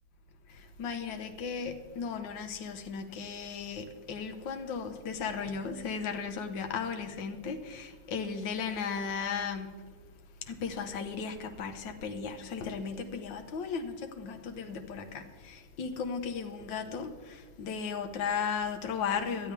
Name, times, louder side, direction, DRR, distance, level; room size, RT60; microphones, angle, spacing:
voice 1, 0.8-9.7 10.5-17.1 17.6-19.5, left 6 dB, 60° left, 1.8 m, -35 dB
19.0 x 12.5 x 3.4 m
omnidirectional pair, 2.4 m